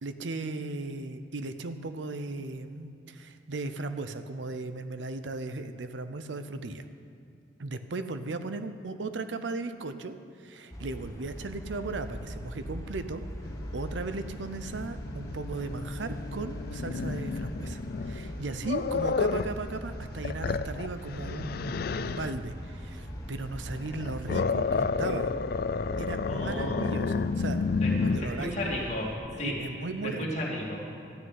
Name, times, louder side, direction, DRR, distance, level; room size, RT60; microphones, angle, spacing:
voice 1, 0.0-6.9 7.6-13.2 13.7-25.3 26.0-27.6 28.0-28.6 29.4-30.4, right 3 dB, 85° right, 10 dB, 0.7 m, -36 dB
sound 1, 10.7-29.2, equal, 20° left, 1.2 m, -41 dB
Growling, 13.4-19.6 20.0-22.4 23.8-28.2, left 4 dB, 55° left, 0.4 m, -31 dB
voice 2, 26.3-27.0 27.8-29.1 29.4-29.5 30.2-31.0, left 1 dB, 40° left, -4 dB, 2.7 m, -34 dB
13.0 x 6.4 x 9.4 m, 2.5 s
head